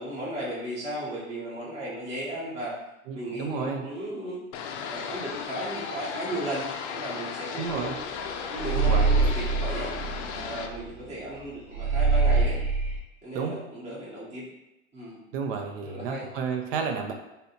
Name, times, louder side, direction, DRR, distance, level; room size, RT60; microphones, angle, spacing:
voice 1, 0.0-2.7 3.1-4.4 4.8-6.6 6.9-7.9 8.5-9.9 10.3-12.6 13.2-14.5 14.9-15.2 15.8-16.3, right 1 dB, 15° right, -8 dB, 0.8 m, -35 dB
voice 2, 3.1-3.8 7.6-8.0 8.7-9.1 13.3-13.6 15.3-17.1, right 6 dB, 45° right, 4 dB, 0.5 m, -31 dB
sound 1, 4.5-10.7, left 6 dB, 55° left, 0.5 m, -35 dB
sound 2, 7.7-7.9 8.2-11.0 11.3-11.4 11.7-13.0, right 4 dB, 90° right, 1.0 m, -24 dB
3.1 x 2.8 x 2.7 m, 0.93 s
hypercardioid pair, 110°, 41 cm